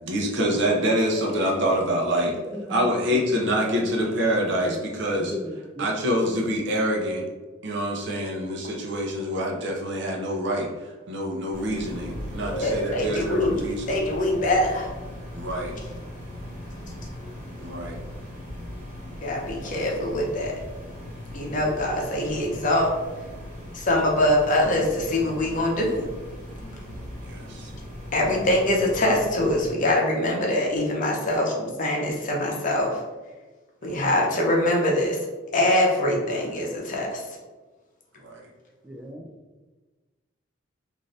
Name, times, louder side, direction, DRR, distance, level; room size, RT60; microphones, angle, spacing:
voice 1, 0.0-2.3 2.7-5.4 5.8-7.2 7.6-13.9 15.3-15.7 17.6-18.0 27.2-27.7 38.2-38.4, equal, 60° right, -1 dB, 0.6 m, -26 dB
voice 2, 2.5-3.2 3.5-3.8 4.7-4.8 5.2-5.9 38.8-39.3, equal, 5° right, 1 dB, 0.3 m, -36 dB
sound 1, 11.5-29.7, equal, 40° right, 1.2 m, -39 dB
voice 3, 12.4-13.5 13.9-14.9 19.2-20.5 21.3-22.9 23.7-26.1 28.1-33.0 33.8-35.2 35.5-37.2, left 1 dB, 40° left, -1 dB, 0.6 m, -23 dB
2.6 x 2.6 x 3.2 m, 1.2 s
head